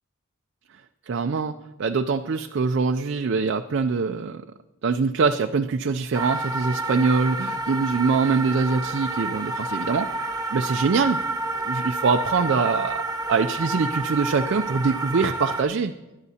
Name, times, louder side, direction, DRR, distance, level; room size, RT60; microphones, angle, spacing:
voice 1, 1.1-4.4 4.8-10.1 10.5-11.2 11.7-15.9, right 4 dB, 55° right, 6 dB, 0.4 m, -23 dB
sound 1, 6.1-15.6, right 2 dB, 20° right, 0.7 m, -29 dB
20.5 x 10.5 x 2.8 m, 1.1 s
head